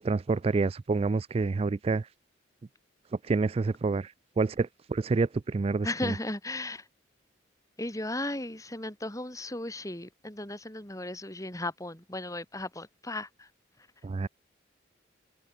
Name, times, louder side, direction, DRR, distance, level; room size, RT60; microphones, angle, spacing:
voice 1, 0.0-2.1 3.2-6.1 14.0-14.3, right 3 dB, 30° right, 0.3 m, -28 dB
voice 2, 5.8-6.8 7.8-13.5, left 1 dB, 15° left, 3.3 m, -36 dB
head